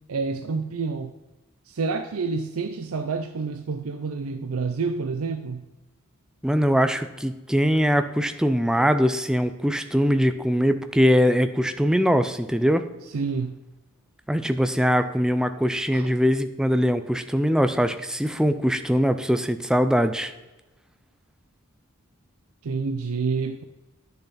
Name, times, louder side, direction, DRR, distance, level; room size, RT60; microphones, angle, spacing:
voice 1, 0.1-1.1 1.7-5.7 13.1-13.6 15.9-16.1 22.6-23.6, right 4 dB, 80° right, 7 dB, 0.6 m, -28 dB
voice 2, 6.4-12.8 14.3-20.3, equal, 5° right, 9 dB, 0.5 m, -22 dB
10.5 x 6.7 x 4.2 m, 1.1 s
head